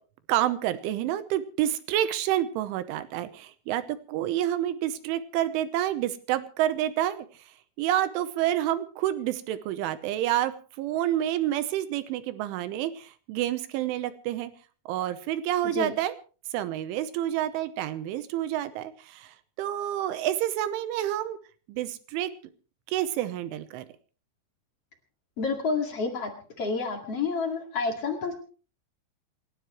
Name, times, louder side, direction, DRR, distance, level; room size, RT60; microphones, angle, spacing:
voice 1, 0.3-7.3 7.8-10.5 10.8-14.5 14.9-16.1 16.5-19.3 19.6-21.4 21.7-22.3 22.9-23.8, right 12 dB, 80° right, 12 dB, 3.2 m, -28 dB
voice 2, 25.4-26.3 26.6-28.3, left 4 dB, 45° left, 2 dB, 2.1 m, -29 dB
27.5 x 12.5 x 3.1 m, 0.38 s
omnidirectional pair, 5.8 m